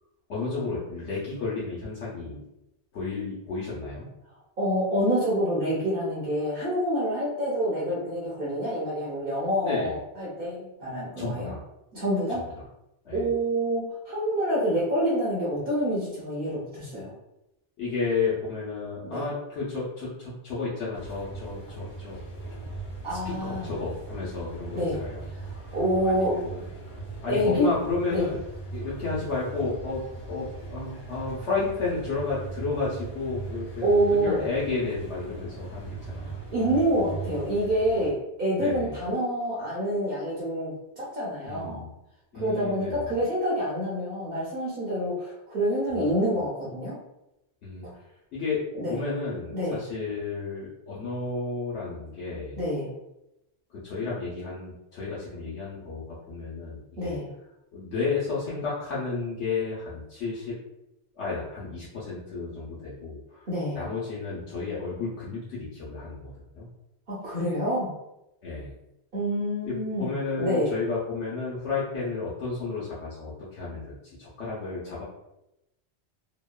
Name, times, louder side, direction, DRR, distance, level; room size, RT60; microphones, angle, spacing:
voice 1, 0.3-2.4 2.9-4.1 9.4-10.0 11.2-11.6 12.3-12.4 13.0-13.3 17.8-22.2 23.1-25.2 26.0-26.6 27.2-28.4 28.7-30.0 30.3-36.3 38.6-39.0 41.5-41.9 42.3-43.1 45.9-46.1 47.6-48.0 48.3-48.6 48.9-52.6 53.7-57.2 57.7-60.5 61.1-63.5 63.7-66.7 68.4-68.7 69.6-75.0, left 4 dB, 85° left, -8 dB, 1.0 m, -32 dB
voice 2, 4.6-11.5 11.9-12.4 13.1-17.1 19.0-19.2 23.0-23.7 24.7-25.0 25.4-26.4 27.3-27.7 28.1-28.3 33.8-34.4 36.5-41.8 42.3-47.0 47.8-47.9 48.7-49.0 49.5-49.8 52.6-52.9 57.0-57.3 63.5-63.8 67.1-67.9 69.1-70.1 70.4-70.7, equal, 55° right, -7 dB, 0.9 m, -27 dB
sound 1, 20.9-38.1, right 3 dB, 50° left, 0.9 m, -39 dB
2.9 x 2.1 x 2.2 m, 0.89 s
omnidirectional pair, 1.1 m